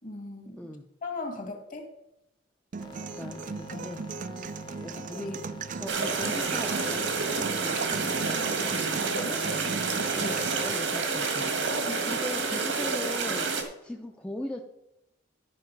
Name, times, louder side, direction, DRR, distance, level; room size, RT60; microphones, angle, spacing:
voice 1, 0.0-0.6 1.0-1.9 3.7-4.0 5.1-5.2 8.4-9.8 11.7-12.1 12.4-12.5, left 2 dB, 45° left, 4 dB, 2.0 m, -39 dB
sound 1, 2.7-10.7, right 5 dB, 45° right, 0.4 m, -37 dB
sound 2, 2.8-7.8, left 1 dB, 25° left, 1.0 m, -46 dB
voice 2, 3.2-4.0 4.8-8.7 10.1-14.6, left 1 dB, 5° left, 2 dB, 0.6 m, -39 dB
sound 3, 5.9-13.6, right 4 dB, 85° right, 1.7 m, -29 dB
12.0 x 5.9 x 5.3 m, 0.86 s
head